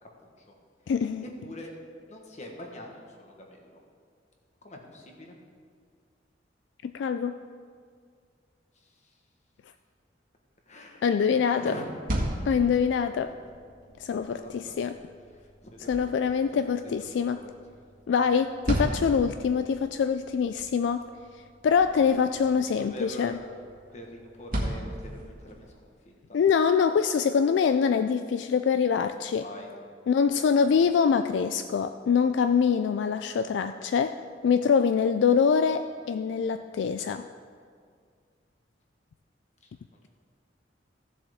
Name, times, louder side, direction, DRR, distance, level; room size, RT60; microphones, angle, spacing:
voice 1, 0.0-0.5 1.2-1.7 2.1-3.8 4.6-5.4 8.7-9.1 10.7-11.0 11.3-11.9 12.6-13.3 14.1-14.8 15.3-16.3 16.8-17.5 21.9-22.2 22.6-23.5 23.9-25.7 26.0-26.4 29.4-29.8 30.3-30.8 39.6-39.7, equal, 40° left, 1 dB, 1.4 m, -44 dB
voice 2, 0.9-1.2 6.8-7.4 11.0-11.7 12.5-13.4 14.0-14.9 15.9-17.4 18.1-21.0 21.6-23.4 26.3-29.4 30.1-34.2 34.4-37.3, left 6 dB, 75° left, 9 dB, 0.3 m, -24 dB
sound 1, 11.8-25.7, equal, 50° right, 1.6 m, -37 dB
15.5 x 7.1 x 3.6 m, 2.1 s
head